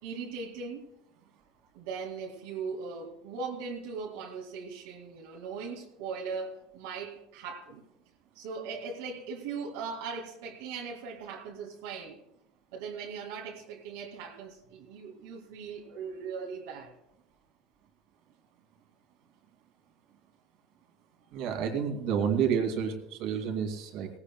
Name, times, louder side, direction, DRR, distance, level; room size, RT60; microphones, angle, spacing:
voice 1, 0.0-0.9 1.7-7.8 8.4-12.2 12.7-17.0, right 5 dB, 80° right, 2.2 m, -39 dB
voice 2, 21.3-24.1, right 7 dB, 65° right, 2.5 m, -29 dB
18.0 x 17.0 x 2.3 m
supercardioid pair, 115°, 0 cm